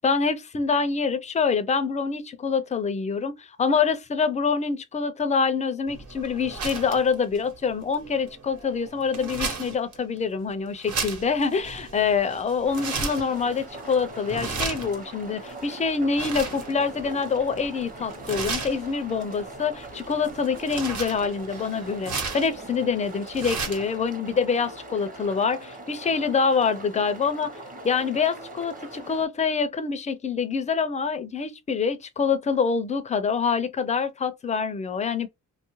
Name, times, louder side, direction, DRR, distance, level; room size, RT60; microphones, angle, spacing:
voice 1, 0.0-27.5 27.8-35.3, left 5 dB, 20° left, 0.4 m, -26 dB
sound 1, 5.9-24.0, right 4 dB, 55° right, 1.1 m, -36 dB
sound 2, 12.6-29.3, right 1 dB, 25° right, 0.8 m, -42 dB
2.8 x 2.3 x 3.0 m
cardioid pair, 120°, 35 cm